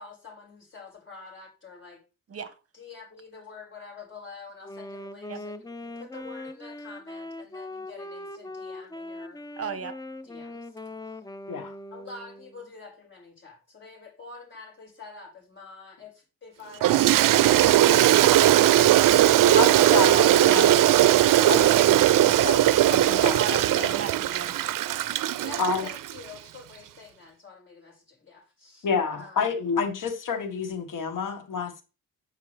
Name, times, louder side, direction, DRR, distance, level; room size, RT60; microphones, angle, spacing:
voice 1, 0.0-2.0 2.7-9.4 10.2-10.8 11.0-11.2 11.9-19.6 20.0-20.3 21.3-21.6 24.4-24.7 25.4-29.6, left 4 dB, 35° left, 5.0 m, -47 dB
voice 2, 2.3-2.6 5.3-5.4 9.6-10.0 23.4-24.5, right 7 dB, 45° right, 1.1 m, -36 dB
Wind instrument woodwind instrument, 4.6-12.7, left 2 dB, 10° left, 0.5 m, -40 dB
Toilet flush, 16.8-26.2, right 13 dB, 70° right, 0.5 m, -19 dB
voice 3, 19.5-20.8 21.5-22.6 22.9-23.9 25.6-25.9 28.8-31.8, left 5 dB, 65° left, 1.5 m, -29 dB
8.7 x 5.8 x 3.3 m
cardioid pair, 90°, 34 cm